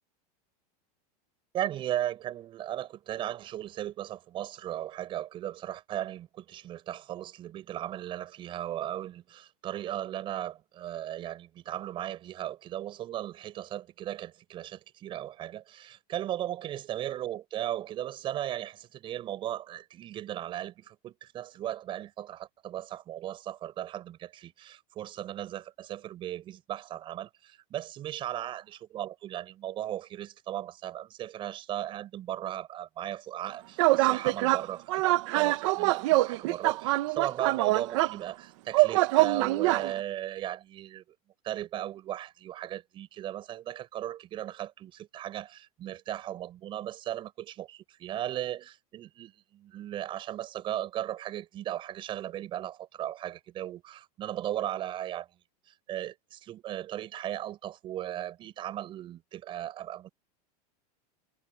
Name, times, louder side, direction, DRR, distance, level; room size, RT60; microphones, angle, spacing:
voice 1, 1.5-41.0 41.4-55.3 55.9-60.1, right 12 dB, 25° right, 7.5 m, -37 dB
sound 1, 33.8-34.6 34.9-38.2 38.7-39.9, right 19 dB, 50° right, 1.3 m, -24 dB
supercardioid pair, 175°, 20 cm